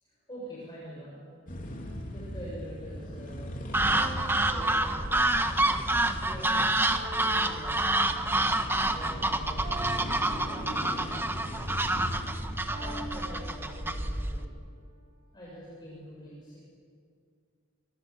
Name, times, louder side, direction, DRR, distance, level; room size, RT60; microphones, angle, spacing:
voice 1, 0.0-1.2 2.1-3.5 3.8-4.1 4.5-5.7 6.2-6.7 7.2-11.1 12.8-14.5 15.3-16.6, equal, 20° left, -7 dB, 7.2 m, -45 dB
sound 1, 1.5-14.2, equal, 40° left, 3.6 m, -39 dB
sound 2, 1.7-2.5 3.9-5.7 6.9-8.5 9.6-11.3 12.7-14.3, right 1 dB, 30° right, 7.7 m, -45 dB
sound 3, 3.7-14.5, right 2 dB, 10° right, 1.2 m, -28 dB
27.5 x 23.5 x 7.4 m, 2.2 s
head